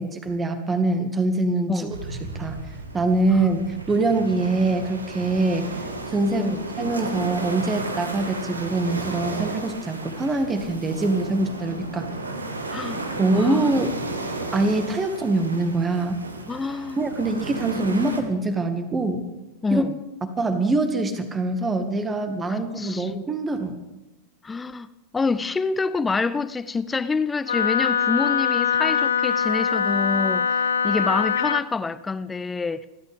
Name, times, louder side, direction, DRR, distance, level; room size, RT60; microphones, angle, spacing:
voice 1, 0.0-1.9 2.2-2.6 2.9-3.6 3.9-5.7 6.1-12.1 13.2-13.9 14.5-16.2 17.0-19.2 19.7-19.8 20.4-23.7, right 2 dB, 15° right, 1.9 m, -24 dB
sound 1, 1.9-18.2, right 2 dB, 75° right, 1.7 m, -33 dB
voice 2, 13.3-13.7 16.5-17.0 19.6-19.9 22.5-23.1 24.4-24.9 25.1-32.9, left 4 dB, 15° left, 0.5 m, -27 dB
Wind instrument woodwind instrument, 27.5-31.7, left 7 dB, 70° left, 0.5 m, -23 dB
29.0 x 12.0 x 3.6 m
figure-of-eight pair, 90°, 0 cm